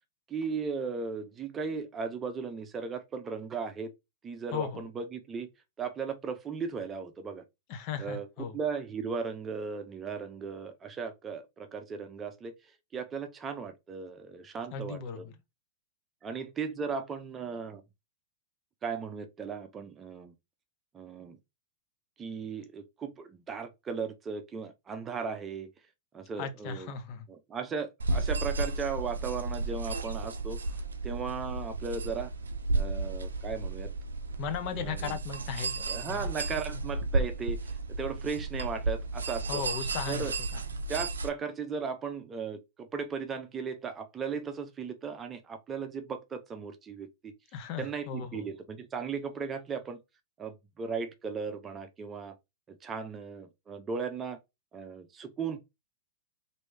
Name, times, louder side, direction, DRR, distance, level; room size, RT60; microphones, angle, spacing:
voice 1, 0.3-3.9 4.2-5.5 5.8-7.4 8.0-12.5 12.9-15.3 16.2-17.8 18.8-20.3 20.9-21.4 22.2-25.7 26.1-26.9 27.3-30.6 31.0-32.3 32.7-33.9 34.7-35.2 35.9-39.6 40.1-40.3 40.9-47.3 47.8-50.0 50.4-52.4 52.7-54.4 54.7-55.6, right 5 dB, 25° right, 0.6 m, -36 dB
voice 2, 4.5-4.8 7.7-8.5 14.7-15.3 26.4-27.3 34.4-36.3 36.7-36.8 39.5-40.6 47.5-48.5, left 6 dB, 45° left, 0.7 m, -37 dB
sound 1, 28.0-41.3, right 3 dB, 85° right, 0.4 m, -33 dB
3.1 x 2.6 x 3.3 m
hypercardioid pair, 105°, 0 cm